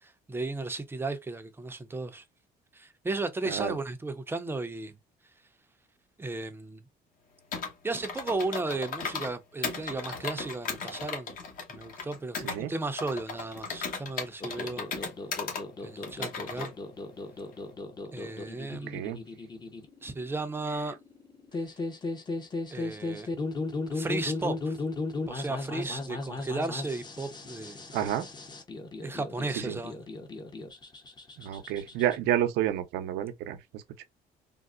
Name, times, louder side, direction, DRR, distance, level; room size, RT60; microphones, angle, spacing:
voice 1, 0.0-2.2 2.7-4.9 6.2-6.8 7.8-11.3 11.7-14.9 15.8-16.7 18.1-19.0 20.0-21.0 22.7-23.3 23.9-24.7 25.3-28.1 29.0-30.1, right 2 dB, 15° right, 0.5 m, -35 dB
voice 2, 3.4-3.8 12.4-12.7 18.9-19.2 27.9-28.3 29.7-29.8 31.4-34.0, right 11 dB, 85° right, 0.6 m, -30 dB
Computer keyboard, 7.5-9.3 9.6-12.6 13.0-15.6 16.0-16.7, left 5 dB, 55° left, 1.1 m, -36 dB
sound 1, 14.4-32.2, left 2 dB, 25° left, 0.7 m, -37 dB
3.7 x 2.0 x 2.3 m
cardioid pair, 110°, 17 cm